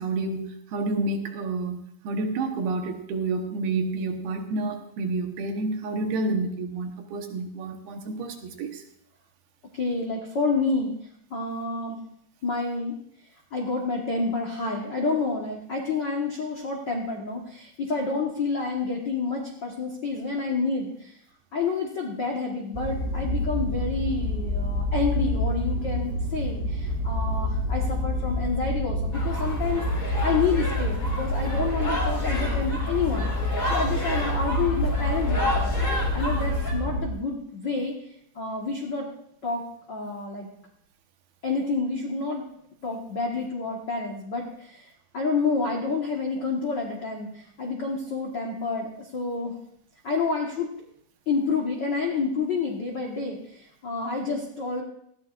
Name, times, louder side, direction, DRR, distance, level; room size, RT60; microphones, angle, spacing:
voice 1, 0.0-8.8, right 3 dB, 80° right, 4 dB, 3.2 m, -29 dB
voice 2, 9.7-10.9 11.3-12.0 12.4-13.0 13.5-21.2 21.5-35.8 36.1-37.9 38.3-39.1 39.4-39.6 39.9-40.5 41.4-42.4 42.8-44.9 45.1-49.5 50.0-50.7 51.3-54.8, left 4 dB, 80° left, 0 dB, 0.9 m, -29 dB
sound 1, 22.7-37.1, left 1 dB, 35° right, 1.3 m, -27 dB
sound 2, 29.1-36.7, left 1 dB, 30° left, 2.7 m, -32 dB
19.0 x 14.0 x 2.5 m, 0.70 s
omnidirectional pair, 4.4 m